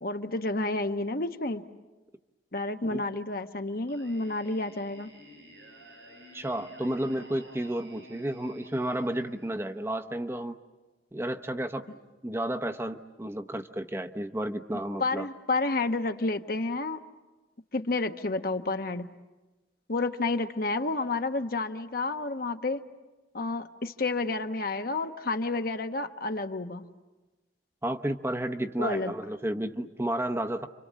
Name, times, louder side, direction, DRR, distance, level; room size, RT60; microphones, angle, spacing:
voice 1, 0.0-1.6 2.5-5.1 15.0-17.0 17.7-19.2 19.9-22.8 23.3-26.9 28.8-29.1, left 3 dB, 55° left, 7 dB, 1.1 m, -30 dB
Singing, 3.9-9.8, equal, 90° right, 7.7 m, -52 dB
voice 2, 6.3-10.6 11.1-11.9 12.2-15.2 27.8-30.7, right 1 dB, 15° right, 6 dB, 0.8 m, -32 dB
30.0 x 25.5 x 7.5 m, 1.2 s
head